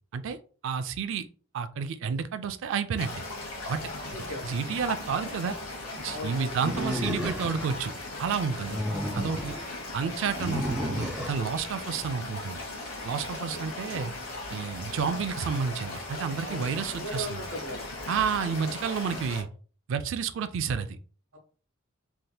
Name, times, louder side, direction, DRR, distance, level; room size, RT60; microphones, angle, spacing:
voice 1, 0.6-1.3 1.5-3.2 3.7-3.8 4.1-5.6 6.0-7.9 8.2-8.8 9.1-9.6 9.9-12.6 13.0-14.1 14.5-17.4 18.1-19.5 19.9-20.9, right 6 dB, 60° right, 11 dB, 0.3 m, -30 dB
sound 1, 3.0-19.4, left 2 dB, 85° left, 1.2 m, -38 dB
voice 2, 6.1-6.5 8.6-8.7 13.5-13.6 16.4-17.8 21.3-21.4, equal, 85° right, 1 dB, 1.2 m, -38 dB
Animal, 6.6-7.8 8.5-9.6 10.4-11.4, equal, 5° right, 0.9 m, -32 dB
3.3 x 2.7 x 2.2 m, 0.40 s
head